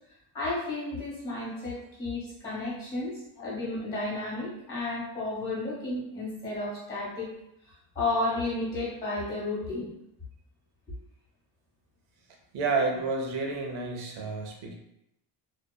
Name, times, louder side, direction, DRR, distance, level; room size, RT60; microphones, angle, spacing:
voice 1, 0.3-7.3 7.9-9.9, left 2 dB, 10° left, -7 dB, 1.1 m, -32 dB
voice 2, 12.5-14.7, right 3 dB, 90° right, 1 dB, 0.7 m, -30 dB
2.7 x 2.0 x 2.2 m, 0.83 s
cardioid pair, 120°, 48 cm